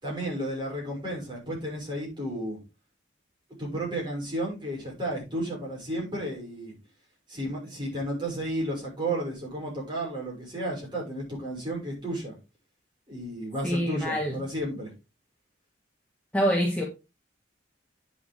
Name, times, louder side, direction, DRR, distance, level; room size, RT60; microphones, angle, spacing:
voice 1, 0.0-2.6 3.6-6.7 7.3-12.3 13.1-14.9, right 1 dB, 25° right, -3 dB, 5.9 m, -33 dB
voice 2, 13.6-14.3 16.3-16.8, equal, 5° left, -2 dB, 1.5 m, -25 dB
9.5 x 6.9 x 3.7 m, 0.28 s
head